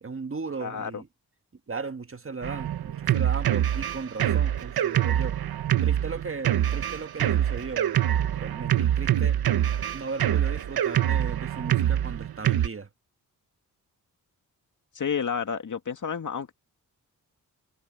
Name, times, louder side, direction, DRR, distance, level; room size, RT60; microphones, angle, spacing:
voice 1, 0.0-1.1 1.7-5.4 5.8-8.0 8.3-9.4 9.9-12.9, right 4 dB, 35° right, 1.7 m, -36 dB
voice 2, 0.6-1.0 9.2-9.3 14.9-16.5, left 7 dB, 55° left, 2.2 m, -30 dB
Drum kit, 2.4-12.7, right 11 dB, 90° right, 1.1 m, -25 dB
cardioid pair, 75°, 36 cm